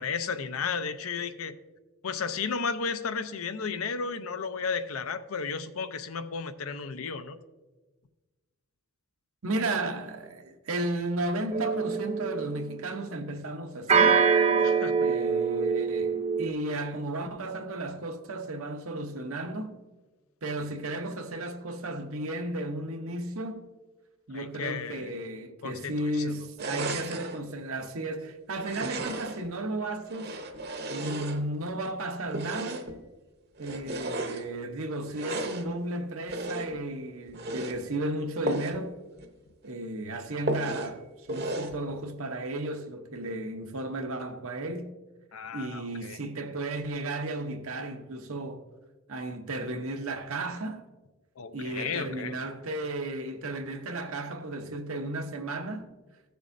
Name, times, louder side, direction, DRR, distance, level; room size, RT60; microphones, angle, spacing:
voice 1, 0.0-1.5 2.0-7.4 14.6-15.1 24.3-25.1 25.6-26.3 45.3-46.2 51.4-52.4, left 5 dB, 80° left, 0.6 m, -33 dB
voice 2, 9.4-14.3 15.0-19.8 20.4-23.7 24.3-30.4 30.9-32.9 33.6-39.0 39.6-44.9 45.5-48.7 49.1-50.9 51.5-55.9, right 2 dB, 80° right, 0.9 m, -34 dB
sound 1, 11.5-12.7 13.9-16.5, right 6 dB, 30° right, 0.5 m, -24 dB
sound 2, 26.6-27.4 28.6-29.5 30.0-31.7 32.3-33.0 33.6-34.5 35.1-35.7 36.3-36.8 37.3-37.8 38.4-38.8 39.2-39.3 39.6-39.7 40.5-40.9 41.3-41.8, right 2 dB, 45° right, 0.8 m, -34 dB
15.5 x 6.8 x 2.6 m
head